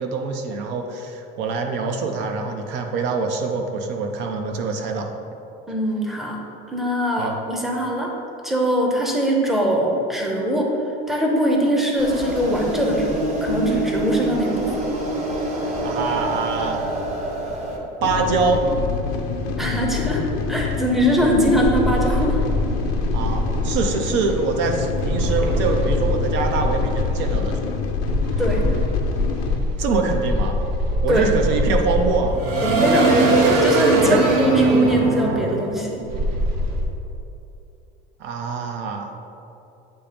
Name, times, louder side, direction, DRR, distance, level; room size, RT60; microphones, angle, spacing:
voice 1, 0.0-5.1 7.2-7.4 15.8-16.8 18.0-18.7 23.1-27.8 29.8-30.6 31.0-33.1 34.0-34.2 38.2-39.1, right 4 dB, 65° right, 4 dB, 0.7 m, -24 dB
voice 2, 5.7-6.4 6.7-8.1 8.4-10.7 11.1-14.8 19.6-20.2 20.5-22.4 28.4-28.6 31.1-31.3 32.6-36.0, equal, ahead, -1 dB, 0.7 m, -22 dB
sound 1, 12.0-17.8, right 1 dB, 35° right, 1.0 m, -26 dB
sound 2, 18.0-29.6, left 5 dB, 90° left, 0.7 m, -26 dB
sound 3, 21.6-23.9 25.0-27.5 28.1-36.8, right 1 dB, 80° right, 1.0 m, -22 dB
8.7 x 2.9 x 5.1 m, 2.8 s
cardioid pair, 155°, 20 cm